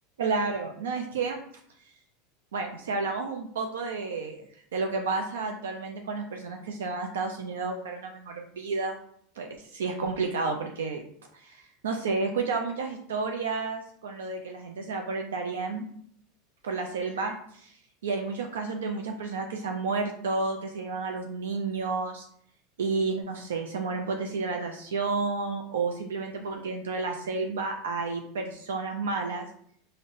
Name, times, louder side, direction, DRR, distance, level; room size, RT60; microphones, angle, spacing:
voice 1, 0.2-1.4 2.5-4.4 4.7-9.0 9.4-11.0 11.3-15.9 16.6-17.7 18.0-22.3 22.8-29.5, right 4 dB, 80° right, 3 dB, 0.3 m, -31 dB
3.8 x 2.1 x 2.5 m, 0.65 s
hypercardioid pair, 90°, 0 cm